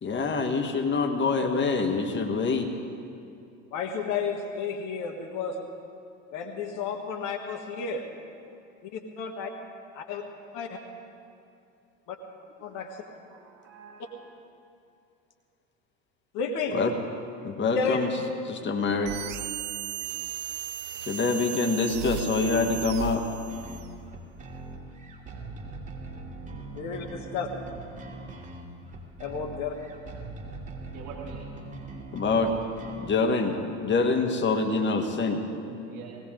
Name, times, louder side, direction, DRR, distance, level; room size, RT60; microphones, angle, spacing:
voice 1, 0.0-2.7 16.7-16.9 17.4-18.1 18.5-19.1 21.1-23.2 32.1-32.5 33.0-33.6 33.8-35.4, left 4 dB, 30° left, 5 dB, 1.6 m, -25 dB
voice 2, 3.7-5.6 6.3-8.0 8.8-9.5 9.9-10.2 10.5-10.8 12.1-12.2 12.6-13.0 16.3-16.8 17.7-18.0 26.7-27.5 29.2-29.7, left 6 dB, 50° left, 3 dB, 1.6 m, -32 dB
voice 3, 13.3-14.3 30.9-31.4 35.6-36.2, right 7 dB, 55° right, -2 dB, 2.2 m, -45 dB
sound 1, 19.1-23.9, right 9 dB, 70° right, 0.9 m, -35 dB
sound 2, 23.5-33.1, right 2 dB, 20° right, 2.8 m, -41 dB
19.5 x 17.0 x 3.9 m, 2.6 s
hypercardioid pair, 75°, 39 cm